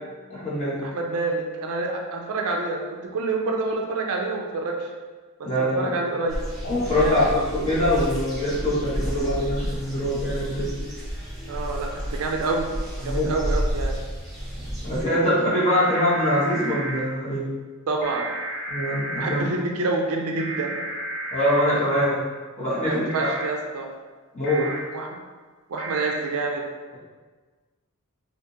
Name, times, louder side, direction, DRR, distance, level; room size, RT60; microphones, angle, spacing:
voice 1, 0.3-0.8 5.4-5.9 6.6-10.7 13.0-13.3 14.8-17.4 18.7-19.4 21.3-22.2 22.6-23.3 24.3-24.7, left 1 dB, 30° left, -9 dB, 1.2 m, -23 dB
voice 2, 0.8-4.9 5.4-6.4 7.0-7.3 11.5-12.7 13.0-14.0 17.9-18.3 19.2-20.8 22.9-23.9 24.7-25.2 25.7-26.7, right 3 dB, 70° right, 1 dB, 0.4 m, -27 dB
sound 1, 6.3-15.0, equal, 5° right, 1.4 m, -31 dB
sound 2, 15.6-17.0 18.0-19.4 20.4-21.7 23.1-23.5 24.4-24.8 25.8-26.1, right 2 dB, 50° left, 0.5 m, -32 dB
3.5 x 2.5 x 2.8 m, 1.4 s
head